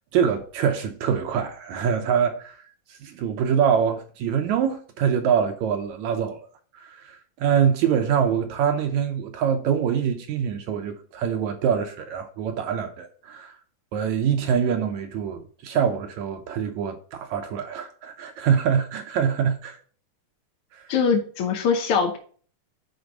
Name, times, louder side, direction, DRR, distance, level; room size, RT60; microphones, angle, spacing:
voice 1, 0.1-2.6 2.9-6.5 6.7-13.6 13.9-19.8 20.7-20.9, right 7 dB, 75° right, 1.9 m, -24 dB
voice 2, 20.9-22.2, left 6 dB, 70° left, 1.4 m, -22 dB
8.0 x 4.5 x 5.1 m
omnidirectional pair, 3.7 m